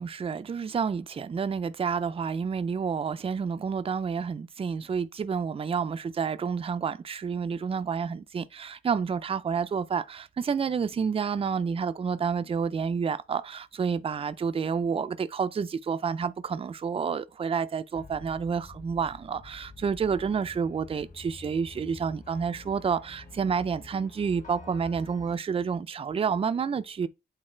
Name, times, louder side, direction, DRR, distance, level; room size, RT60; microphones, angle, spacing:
voice 1, 0.0-27.1, right 6 dB, 30° right, 0.4 m, -29 dB
sound 1, 17.9-25.3, left 3 dB, 40° left, 2.8 m, -48 dB
8.7 x 3.9 x 4.4 m
wide cardioid pair, 155°, 20 cm